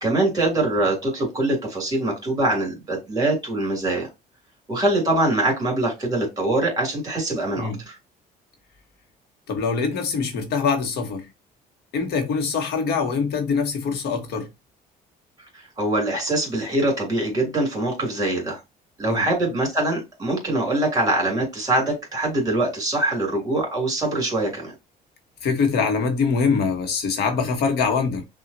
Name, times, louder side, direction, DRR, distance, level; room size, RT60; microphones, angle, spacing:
voice 1, 0.0-4.1 4.7-8.0 15.5-18.6 19.0-24.7, right 2 dB, 20° right, 2.5 m, -23 dB
voice 2, 9.5-11.3 11.9-14.5 19.1-19.3 25.4-28.2, left 5 dB, 75° left, 1.1 m, -23 dB
5.7 x 2.4 x 2.7 m
cardioid pair, 110°, 17 cm